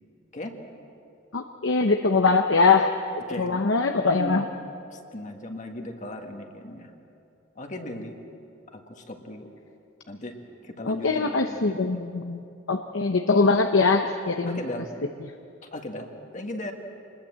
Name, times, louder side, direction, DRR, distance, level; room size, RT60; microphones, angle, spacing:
voice 1, 1.3-2.9 3.4-4.4 10.9-12.4 12.7-14.6 15.2-15.3, left 4 dB, 70° left, 5 dB, 0.9 m, -22 dB
voice 2, 3.3-3.6 4.1-4.4 4.9-6.9 7.5-8.1 8.7-9.5 10.1-10.3 10.6-11.9 14.5-14.9 15.7-16.7, left 1 dB, 40° left, 3 dB, 1.8 m, -37 dB
25.0 x 20.5 x 7.6 m, 2.7 s
head